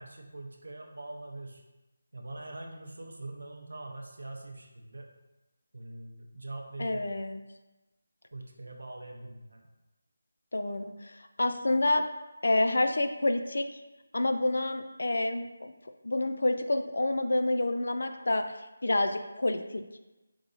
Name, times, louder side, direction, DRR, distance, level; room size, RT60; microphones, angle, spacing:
voice 1, 0.0-1.6 2.1-5.1 5.7-7.1 8.3-9.7, right 2 dB, 75° right, 1 dB, 0.6 m, -43 dB
voice 2, 6.8-7.4 10.5-12.1 12.4-13.7 14.1-15.7 16.0-20.0, left 2 dB, 75° left, 7 dB, 0.3 m, -28 dB
3.8 x 2.8 x 3.8 m, 1.1 s
figure-of-eight pair, 175°, 0 cm